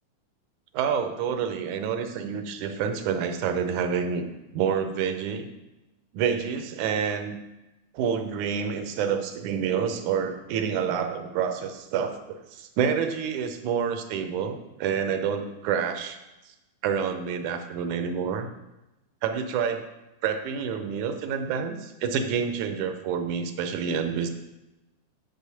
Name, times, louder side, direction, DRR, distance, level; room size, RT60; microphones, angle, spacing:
voice 1, 0.7-4.2 4.5-5.5 6.1-7.4 7.9-16.2 16.8-18.5 19.2-19.8 20.2-24.3, right 7 dB, 90° right, 8 dB, 2.2 m, -28 dB
6.6 x 6.2 x 6.9 m, 0.99 s
omnidirectional pair, 3.5 m